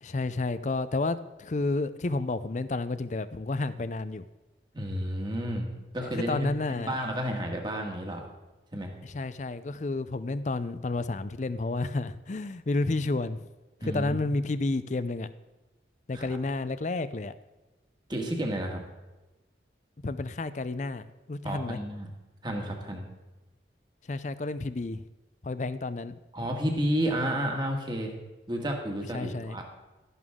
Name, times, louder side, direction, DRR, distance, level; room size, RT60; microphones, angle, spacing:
voice 1, 0.0-4.2 6.0-7.0 9.0-13.5 13.8-15.3 16.1-17.3 20.0-21.0 21.3-21.8 24.1-25.0 25.4-26.1 29.1-29.6, left 2 dB, 40° left, 14 dB, 0.5 m, -31 dB
voice 2, 4.7-8.2 8.7-8.9 13.8-14.3 16.1-16.2 18.1-18.8 21.4-22.1 22.4-23.1 26.3-28.1 28.5-29.6, equal, 25° right, 2 dB, 1.7 m, -31 dB
12.5 x 11.0 x 3.7 m, 1.1 s
head